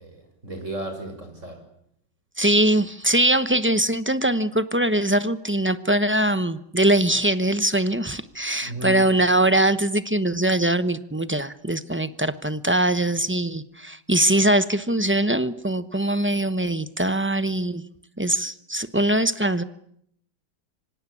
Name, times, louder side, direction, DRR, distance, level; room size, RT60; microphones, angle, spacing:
voice 1, 0.0-1.6 8.6-9.0, equal, 45° right, 6 dB, 6.9 m, -34 dB
voice 2, 2.4-17.8 18.2-19.6, right 1 dB, 10° right, 12 dB, 0.7 m, -22 dB
26.5 x 25.5 x 8.6 m, 0.71 s
omnidirectional pair, 1.8 m